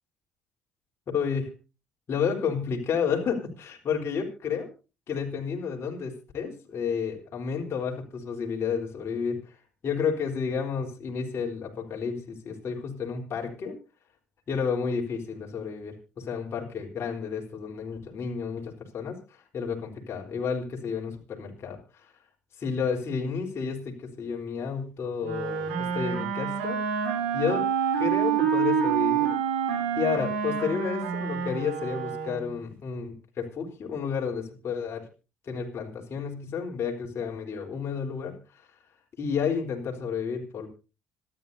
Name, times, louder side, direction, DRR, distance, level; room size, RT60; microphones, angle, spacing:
voice 1, 1.1-1.5 2.1-4.7 5.1-9.5 9.8-13.8 14.5-22.1 22.6-26.8 27.3-27.7 28.0-29.4 29.7-35.1 35.5-38.7 39.2-40.7, left 6 dB, 45° left, 1 dB, 3.9 m, -31 dB
Wind instrument woodwind instrument, 25.2-32.6, right 8 dB, 75° right, 3.7 m, -27 dB
26.0 x 11.0 x 2.7 m, 0.32 s
hypercardioid pair, 55°, 6 cm